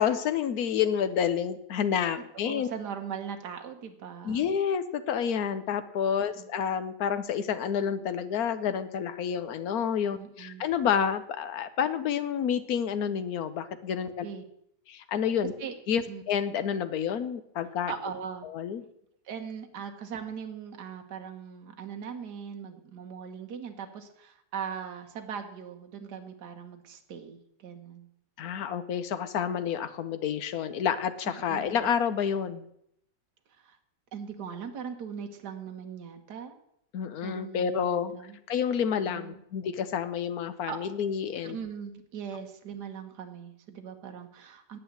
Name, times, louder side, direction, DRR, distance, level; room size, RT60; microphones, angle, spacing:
voice 1, 0.0-2.7 4.2-14.2 14.9-15.5 15.9-17.9 18.5-18.8 28.4-32.7 36.9-38.1 38.5-41.6, left 8 dB, 65° left, 12 dB, 1.3 m, -29 dB
voice 2, 2.4-4.6 6.2-6.5 10.1-10.6 14.2-14.4 15.6-15.7 16.1-16.2 17.9-18.5 19.3-28.1 31.3-31.9 33.6-33.8 34.1-36.6 37.2-38.4 38.9-39.4 40.7-40.8 41.4-44.8, right 7 dB, 70° right, 4 dB, 1.8 m, -40 dB
10.0 x 8.3 x 8.0 m, 0.75 s
omnidirectional pair, 1.8 m